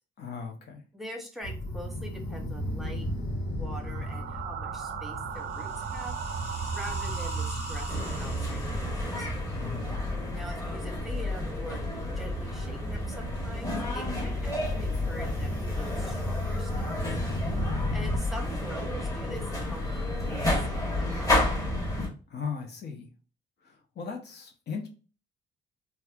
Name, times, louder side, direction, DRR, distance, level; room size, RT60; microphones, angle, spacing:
voice 1, 0.2-0.8 9.6-9.9 22.3-23.1 23.6-24.9, left 5 dB, 55° left, 3 dB, 0.8 m, -37 dB
voice 2, 0.9-3.1 3.4-6.2 6.7-9.3 10.3-11.8 12.1-17.2 17.9-20.4 20.7-21.4, equal, ahead, 1 dB, 0.9 m, -44 dB
sound 1, 1.4-18.2, equal, 90° left, 1.2 m, -35 dB
sound 2, 3.7-8.8, right 9 dB, 65° right, 0.5 m, -38 dB
sound 3, 7.9-22.1, left 1 dB, 15° left, 1.2 m, -31 dB
4.1 x 2.3 x 2.3 m, 0.36 s
cardioid pair, 90°, 20 cm